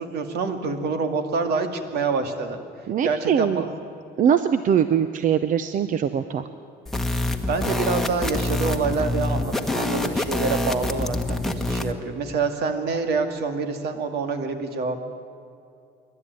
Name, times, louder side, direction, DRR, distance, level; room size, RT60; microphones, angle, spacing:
voice 1, 0.0-2.6 3.0-3.8 7.5-15.0, right 4 dB, 75° right, 7 dB, 2.3 m, -26 dB
voice 2, 2.9-3.6 4.2-6.4, right 8 dB, 50° right, 11 dB, 0.8 m, -22 dB
sound 1, 6.9-11.9, left 1 dB, ahead, 1.5 m, -26 dB
27.0 x 12.0 x 9.4 m, 2.5 s
cardioid pair, 110°, 17 cm